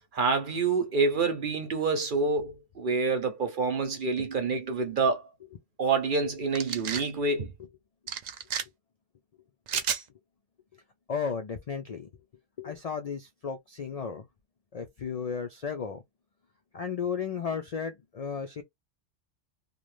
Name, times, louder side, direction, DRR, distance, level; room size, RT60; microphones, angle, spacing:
voice 1, 0.1-5.2 5.8-7.5, right 4 dB, 50° right, 0.7 m, -27 dB
sound 1, 6.5-7.1 8.1-8.6 9.7-10.0, right 7 dB, 80° right, 0.3 m, -31 dB
voice 2, 11.1-12.1 12.6-14.3 14.7-16.0 16.7-18.6, left 6 dB, 80° left, 0.3 m, -34 dB
2.5 x 2.4 x 3.1 m
omnidirectional pair, 1.3 m